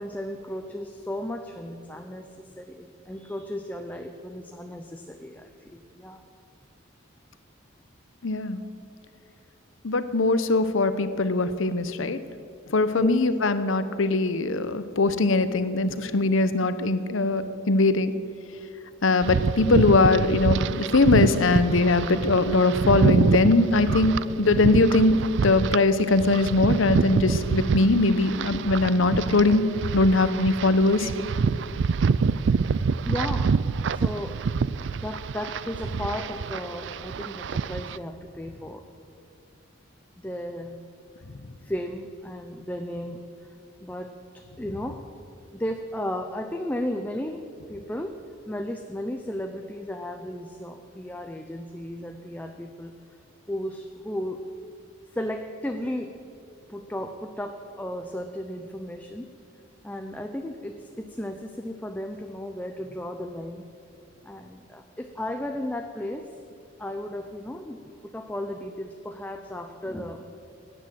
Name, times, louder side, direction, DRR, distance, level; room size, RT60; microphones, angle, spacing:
voice 1, 0.0-6.2 12.9-13.2 33.0-34.4 35.0-38.8 40.2-40.8 41.6-43.6 43.8-45.0 45.5-47.4 47.7-48.2 48.5-52.9 53.5-54.4 55.1-56.1 56.7-59.3 59.8-63.7 64.2-66.3 66.8-70.3, left 1 dB, 10° left, 5 dB, 0.6 m, -34 dB
voice 2, 8.2-8.6 9.8-12.2 12.7-18.1 19.0-29.6 29.9-31.1, left 2 dB, 75° left, 12 dB, 0.9 m, -21 dB
sound 1, 19.2-25.8 26.2-38.0, right 5 dB, 60° right, 0.4 m, -26 dB
16.5 x 10.0 x 7.6 m, 2.5 s
head